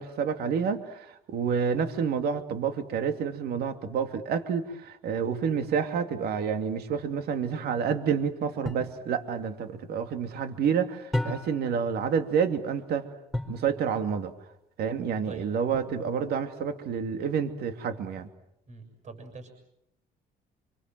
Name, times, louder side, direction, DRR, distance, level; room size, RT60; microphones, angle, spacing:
voice 1, 0.0-13.1 13.5-14.3 14.8-18.3, right 7 dB, 70° right, 8 dB, 2.6 m, -29 dB
sound 1, 8.6-9.0 11.1-11.7 13.3-13.7 15.7-16.3, left 1 dB, ahead, 5.0 m, -32 dB
voice 2, 18.7-19.5, right 4 dB, 45° right, 6 dB, 6.8 m, -43 dB
27.0 x 25.0 x 7.7 m, 0.78 s
cardioid pair, 110°, 17 cm